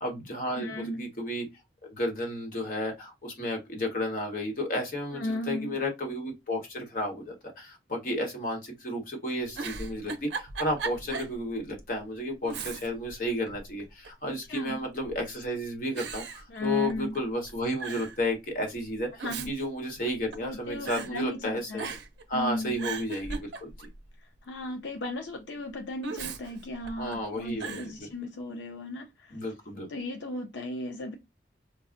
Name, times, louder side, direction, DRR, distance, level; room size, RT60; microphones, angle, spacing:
voice 1, 0.0-1.5 1.8-21.9 22.3-23.9 27.0-27.9 29.3-29.9, left 1 dB, 50° left, 1.1 m, -32 dB
voice 2, 0.6-1.1 5.1-5.8 14.5-14.8 16.5-17.2 19.2-19.5 20.4-21.9 22.3-22.9 24.2-29.4 29.9-31.2, left 1 dB, 85° left, 0.5 m, -35 dB
Giggle, 9.5-11.4 11.8-11.9 12.4-13.1 13.5-14.3 15.0-15.4 16.0-17.2 17.5-17.6 17.8-18.2 19.0-20.5 20.9-21.1 21.8-22.2 22.6-24.0 26.0-27.2 27.6-27.9, right 4 dB, 75° right, 0.5 m, -37 dB
4.5 x 2.1 x 2.5 m
head